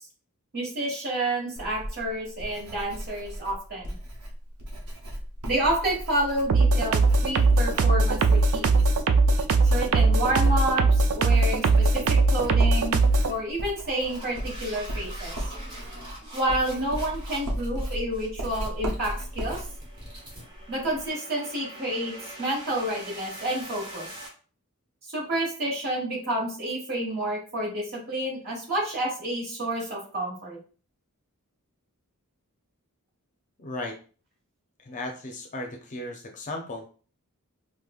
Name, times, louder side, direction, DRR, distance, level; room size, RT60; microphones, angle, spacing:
voice 1, 0.5-3.9 5.4-8.8 9.7-15.3 16.3-19.6 20.7-24.1 25.1-30.6, right 1 dB, 45° right, -2 dB, 1.4 m, -29 dB
Writing, 1.6-21.1, equal, 80° right, 0.8 m, -37 dB
sound 1, 6.5-13.3, right 3 dB, 65° right, 0.4 m, -20 dB
sound 2, 10.5-10.7 11.1-11.3 11.8-12.1 12.7-12.9 13.6-24.3, right 1 dB, 20° right, 1.3 m, -44 dB
voice 2, 33.6-34.0 34.8-36.8, left 2 dB, 35° left, 2 dB, 0.5 m, -35 dB
4.9 x 2.0 x 2.4 m, 0.38 s
head